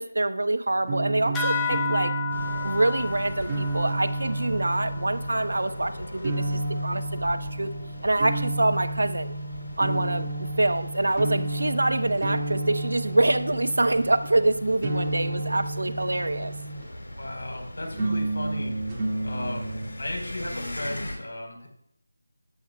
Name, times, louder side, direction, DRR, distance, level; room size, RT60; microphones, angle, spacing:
voice 1, 0.0-2.1 2.6-7.7 8.0-9.3 9.8-16.5, right 2 dB, 80° right, 11 dB, 0.9 m, -25 dB
sound 1, 0.8-17.1 17.9-19.9, right 2 dB, 15° right, 2.2 m, -31 dB
sound 2, 1.3-6.3, left 6 dB, 5° left, 0.8 m, -33 dB
sound 3, 2.3-21.1, left 1 dB, 90° left, 3.7 m, -40 dB
voice 2, 17.1-21.7, left 1 dB, 75° left, 2 dB, 4.3 m, -36 dB
18.0 x 9.4 x 2.3 m, 0.72 s
figure-of-eight pair, 175°, 0 cm